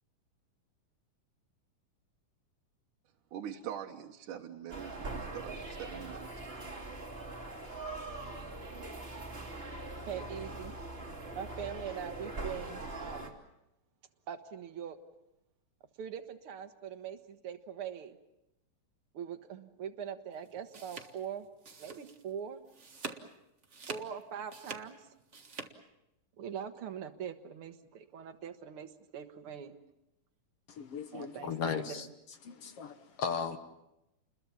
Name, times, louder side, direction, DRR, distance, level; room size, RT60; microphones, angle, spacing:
voice 1, 3.3-6.6, right 9 dB, 75° right, 1 dB, 2.6 m, -43 dB
sound 1, 4.7-13.3, right 2 dB, 20° right, 2.8 m, -42 dB
voice 2, 10.1-10.7 11.3-13.3 14.3-15.0 16.0-18.2 19.1-21.5 21.8-22.6 23.9-25.1 26.4-29.7 31.1-32.1, right 8 dB, 50° right, 7 dB, 1.9 m, -42 dB
sound 2, 20.4-22.3 22.7-23.3 23.6-25.7, right 4 dB, 35° right, 1.1 m, -45 dB
voice 3, 30.8-32.1 32.4-33.6, left 6 dB, 55° left, 8 dB, 1.9 m, -36 dB
29.5 x 21.5 x 7.2 m, 0.89 s
omnidirectional pair, 3.7 m